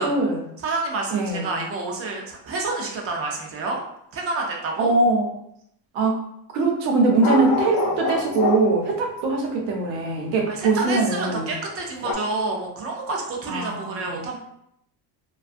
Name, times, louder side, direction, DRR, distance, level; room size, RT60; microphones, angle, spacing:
voice 1, 0.0-0.4 1.1-1.5 4.8-5.3 5.9-6.2 6.5-11.5 13.5-14.2, right 3 dB, 85° right, 0 dB, 0.8 m, -22 dB
voice 2, 0.6-3.8 4.1-4.9 10.5-14.4, right 3 dB, 35° right, 0 dB, 0.4 m, -29 dB
sound 1, 7.2-8.9 12.0-12.1, left 3 dB, 45° left, 0.5 m, -25 dB
2.4 x 2.3 x 2.4 m, 0.75 s
cardioid pair, 145°, 46 cm